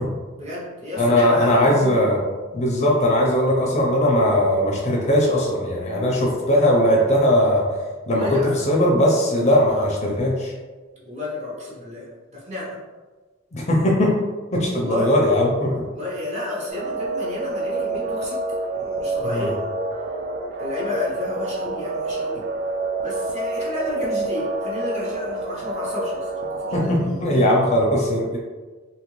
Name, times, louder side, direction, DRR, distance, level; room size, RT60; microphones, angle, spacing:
voice 1, 0.4-2.0 8.1-8.6 11.0-12.8 14.7-15.2 15.8-18.4 18.7-19.6 20.6-22.4 23.0-27.3, left 2 dB, 35° right, -6 dB, 0.9 m, -31 dB
voice 2, 1.0-2.2 2.5-7.6 8.1-10.5 13.5-14.2 14.5-15.8 19.3-19.5 26.7-28.4, left 1 dB, 35° left, -2 dB, 0.5 m, -19 dB
sound 1, 16.7-26.8, right 2 dB, 50° right, 0.3 m, -28 dB
2.8 x 2.5 x 3.0 m, 1.4 s
head